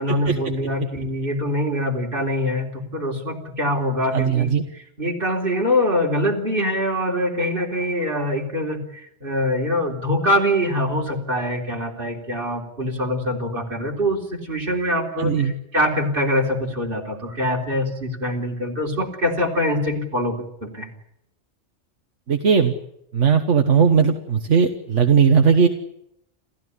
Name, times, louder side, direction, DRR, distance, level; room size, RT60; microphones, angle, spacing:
voice 1, 0.0-20.9, left 1 dB, 50° right, 2 dB, 3.9 m, -24 dB
voice 2, 4.1-4.6 15.2-15.5 22.3-22.7 23.1-25.7, right 6 dB, 75° right, 5 dB, 1.7 m, -17 dB
28.5 x 15.0 x 10.0 m, 0.79 s
omnidirectional pair, 1.2 m